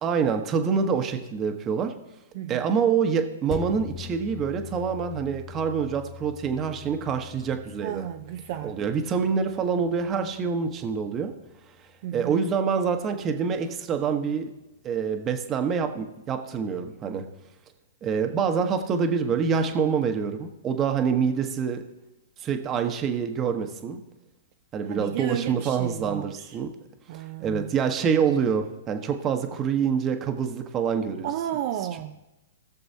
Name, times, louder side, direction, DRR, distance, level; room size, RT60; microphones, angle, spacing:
voice 1, 0.0-1.9 2.5-8.1 8.6-11.3 12.1-14.4 14.8-17.2 18.0-21.8 22.4-24.0 24.7-26.7 27.4-31.3, right 6 dB, 25° right, 6 dB, 1.1 m, -26 dB
voice 2, 2.3-2.7 7.8-8.7 12.0-12.4 24.9-26.6 27.1-27.7 31.2-32.2, right 11 dB, 50° right, 5 dB, 0.6 m, -33 dB
sound 1, 3.5-12.3 12.7-12.8, left 8 dB, 25° left, 1.6 m, -43 dB
19.0 x 6.7 x 2.8 m, 0.98 s
hypercardioid pair, 120°, 0 cm